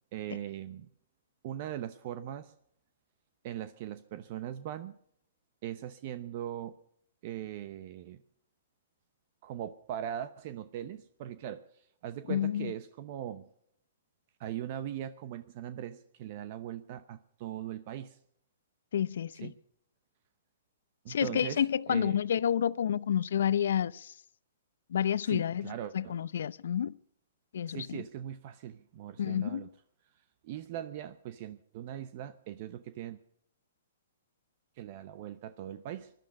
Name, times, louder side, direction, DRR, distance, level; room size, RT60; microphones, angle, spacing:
voice 1, 0.1-0.9 1.4-2.5 3.4-4.9 5.6-6.8 7.2-8.2 9.4-13.5 14.4-18.2 19.3-19.5 21.0-21.6 21.9-22.2 25.3-26.2 27.7-29.7 30.4-33.2 34.8-36.1, right 11 dB, 45° right, 0.8 m, -40 dB
voice 2, 12.3-12.7 18.9-19.5 21.1-24.1 24.9-27.0 27.5-28.0 29.2-29.7, left 9 dB, 70° left, 0.5 m, -30 dB
19.5 x 12.0 x 5.4 m
hypercardioid pair, 140°, 0 cm